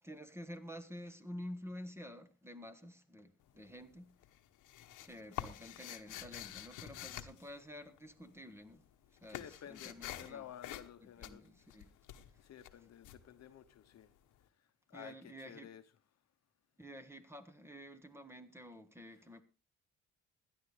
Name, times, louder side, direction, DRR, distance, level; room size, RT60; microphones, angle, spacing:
voice 1, 0.0-4.1 5.0-8.8 9.2-10.4 11.2-11.9 14.9-15.7 16.8-19.4, equal, 10° right, 1.4 m, -50 dB
sound 1, 3.4-3.9 4.2-8.3 8.6-14.1, left 12 dB, 85° left, 1.0 m, -48 dB
voice 2, 9.3-11.8 12.4-14.1 14.9-15.8, left 10 dB, 60° left, 1.0 m, -53 dB
16.5 x 11.5 x 3.3 m
cardioid pair, 90°, 30 cm